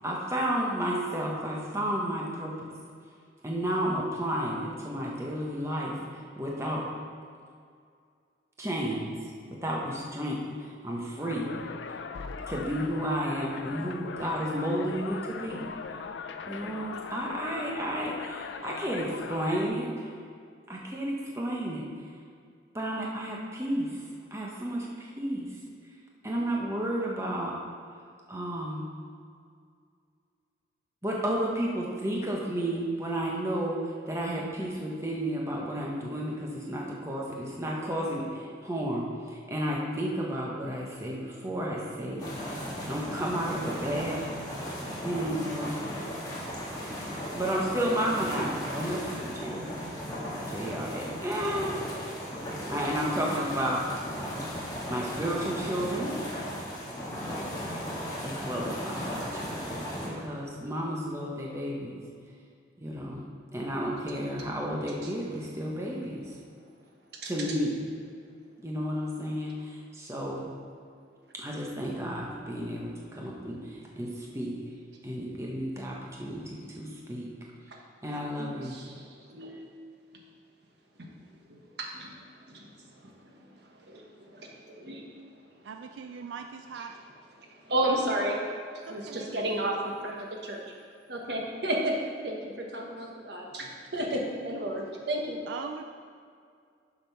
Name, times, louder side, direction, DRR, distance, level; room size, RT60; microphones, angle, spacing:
voice 1, 0.0-2.5 3.4-6.8 8.6-9.1 9.5-11.5 12.5-15.7 16.5-20.1 20.7-21.8 22.7-23.9 24.3-25.5 26.2-27.5 28.3-28.9 31.0-42.6 42.8-44.3 45.0-45.8 47.3-49.6 50.5-51.8 52.7-53.8 54.9-56.1 58.2-62.0 62.8-63.2 63.5-66.2 67.2-67.8 68.6-70.5 71.3-74.6 75.0-77.3 78.0-78.8, equal, 15° right, -3 dB, 1.0 m, -32 dB
sound 1, 11.2-19.7, left 5 dB, 80° left, 0.4 m, -39 dB
sound 2, 42.2-60.1, equal, 20° left, 1.5 m, -36 dB
voice 2, 78.4-79.6 81.0-81.1 81.5-82.1 82.5-85.1 86.7-86.8 87.3-88.4 88.9-90.6 91.1-92.0 92.2-95.4, right 1 dB, 65° right, 0 dB, 1.2 m, -33 dB
voice 3, 85.6-87.0 88.9-89.4 95.5-95.8, right 6 dB, 80° right, 5 dB, 0.3 m, -40 dB
7.3 x 5.2 x 5.7 m, 2.2 s
head